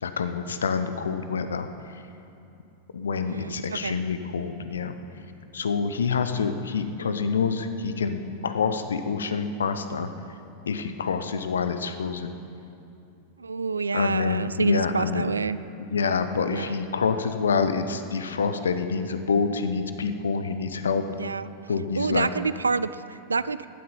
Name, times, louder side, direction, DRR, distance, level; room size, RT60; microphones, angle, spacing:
voice 1, 0.0-1.7 1.9-2.0 2.9-5.0 5.5-10.1 10.7-12.3 13.9-15.3 15.9-21.0 21.7-22.3, left 5 dB, 70° left, 9 dB, 0.9 m, -27 dB
voice 2, 3.2-4.0 13.4-15.6 16.5-16.8 21.1-21.5 22.0-23.7, right 4 dB, 75° right, 16 dB, 0.4 m, -28 dB
16.5 x 12.0 x 5.6 m, 2.7 s
figure-of-eight pair, 90°, 0 cm